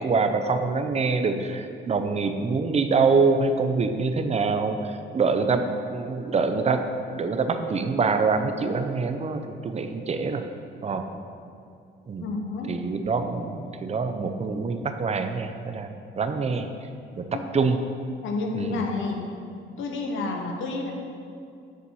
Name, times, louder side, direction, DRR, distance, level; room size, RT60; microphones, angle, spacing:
voice 1, 0.0-6.9 7.2-10.4 10.8-11.1 12.1-12.3 12.7-15.9 16.2-16.7 17.2-17.3 17.5-17.8 18.5-18.8, right 4 dB, 35° right, 7 dB, 0.6 m, -25 dB
voice 2, 12.2-12.7 18.2-19.2 19.8-20.9, left 3 dB, 80° left, 2 dB, 1.0 m, -29 dB
7.0 x 4.4 x 6.2 m, 2.4 s
cardioid pair, 90°, 20 cm